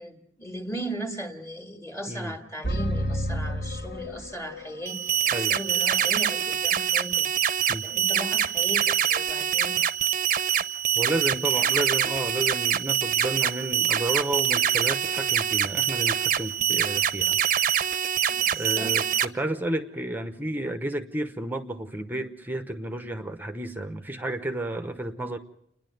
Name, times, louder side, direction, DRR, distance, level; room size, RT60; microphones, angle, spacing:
voice 1, 0.0-7.3 7.8-9.8 11.5-11.7 18.3-19.0, right 1 dB, 15° left, 4 dB, 2.1 m, -37 dB
voice 2, 2.1-2.4 5.3-5.6 7.7-7.9 10.9-17.4 18.6-25.4, right 1 dB, 10° right, 8 dB, 0.8 m, -31 dB
sound 1, 2.6-4.8, equal, 80° left, 2.3 m, -30 dB
sound 2, 4.9-19.3, right 9 dB, 50° right, 0.7 m, -25 dB
29.0 x 10.5 x 9.1 m, 0.73 s
head